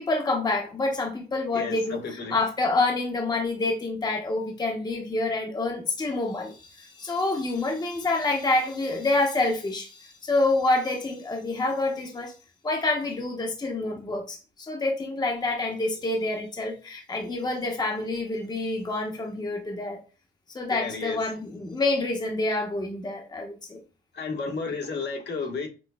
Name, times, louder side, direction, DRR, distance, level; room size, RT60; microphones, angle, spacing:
voice 1, 0.0-12.3 12.6-20.0 20.5-23.8, left 2 dB, 20° left, 0.8 m, -27 dB
voice 2, 1.5-2.4 20.7-21.2 24.1-25.7, left 4 dB, 60° left, 1.3 m, -32 dB
6.0 x 2.3 x 2.2 m
cardioid pair, 90°, 20 cm